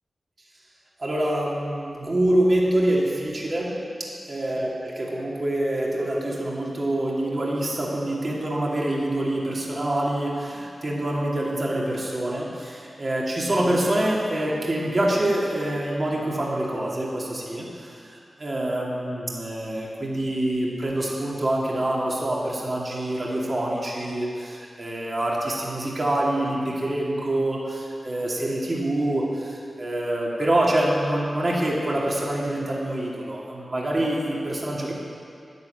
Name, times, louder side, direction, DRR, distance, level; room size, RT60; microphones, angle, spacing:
voice 1, 1.0-3.8 4.3-17.9 18.4-34.9, right 1 dB, 35° right, -4 dB, 2.3 m, -26 dB
10.5 x 9.4 x 7.8 m, 2.4 s
wide cardioid pair, 125°, 0 cm